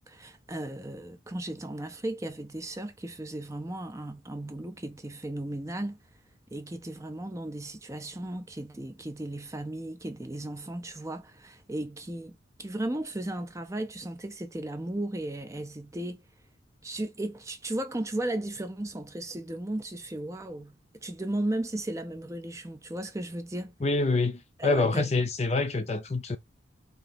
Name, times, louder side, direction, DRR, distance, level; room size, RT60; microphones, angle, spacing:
voice 1, 0.0-6.0 6.5-16.2 16.8-20.8 21.0-23.7 24.6-25.1, right 1 dB, 15° right, 0.5 m, -35 dB
voice 2, 23.8-26.4, left 3 dB, 35° left, 0.6 m, -26 dB
4.4 x 2.8 x 4.0 m
head